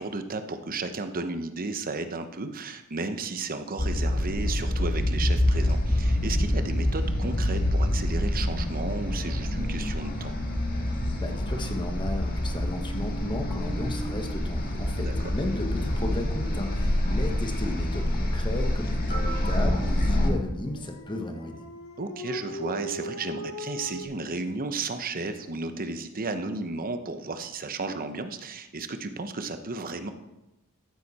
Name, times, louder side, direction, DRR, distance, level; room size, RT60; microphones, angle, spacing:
voice 1, 0.0-10.4 15.0-15.1 22.0-30.1, right 3 dB, 40° right, 8 dB, 0.9 m, -33 dB
sound 1, 3.8-20.3, left 1 dB, 40° left, 1.9 m, -26 dB
voice 2, 11.1-21.6, left 1 dB, 20° left, 5 dB, 1.2 m, -34 dB
Dog, 20.6-24.0, left 1 dB, 80° left, 1.3 m, -38 dB
14.0 x 9.1 x 4.2 m, 0.97 s
head